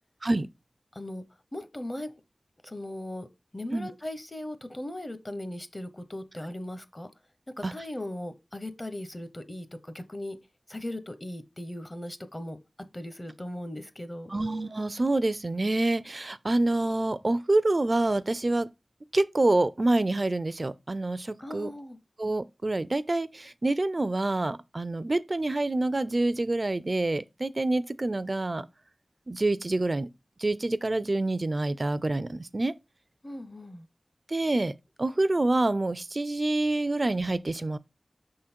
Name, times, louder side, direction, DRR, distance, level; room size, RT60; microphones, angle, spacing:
voice 1, 0.9-1.2 1.5-2.1 2.6-3.3 3.5-7.1 7.6-10.4 10.7-12.6 12.9-14.4 21.4-22.0 33.2-33.9, left 1 dB, 30° left, 0.8 m, -38 dB
voice 2, 14.3-18.7 19.1-21.7 22.2-28.7 29.3-30.1 30.4-32.7 34.3-34.7 35.0-37.8, right 2 dB, 50° right, 0.4 m, -27 dB
6.2 x 3.8 x 4.3 m
wide cardioid pair, 50°, 0 cm